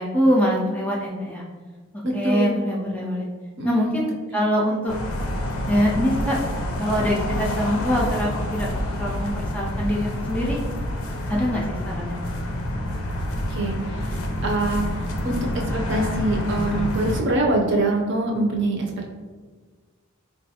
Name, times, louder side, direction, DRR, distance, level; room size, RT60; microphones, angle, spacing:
voice 1, 0.0-1.4 2.1-3.3 3.6-4.9 5.7-6.4 6.8-10.6 11.3-12.2, equal, 5° left, -3 dB, 0.3 m, -24 dB
voice 2, 2.0-2.5 3.6-3.9 13.5-14.0 14.4-14.9 15.2-19.1, right 2 dB, 55° right, 0 dB, 0.6 m, -24 dB
sound 1, 4.9-17.2, left 1 dB, 85° left, 0.5 m, -28 dB
4.0 x 2.3 x 2.8 m, 1.4 s
head